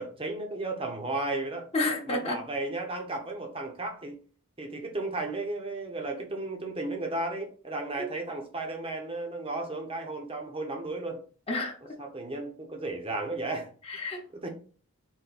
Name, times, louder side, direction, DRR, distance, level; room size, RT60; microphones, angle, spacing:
voice 1, 0.0-1.7 2.1-4.2 4.6-11.2 12.0-13.7 14.3-14.5, right 2 dB, 25° right, 0.9 m, -34 dB
voice 2, 1.7-2.4 11.5-11.8 13.9-14.2, left 2 dB, 25° left, 1.0 m, -29 dB
4.4 x 3.0 x 4.1 m
head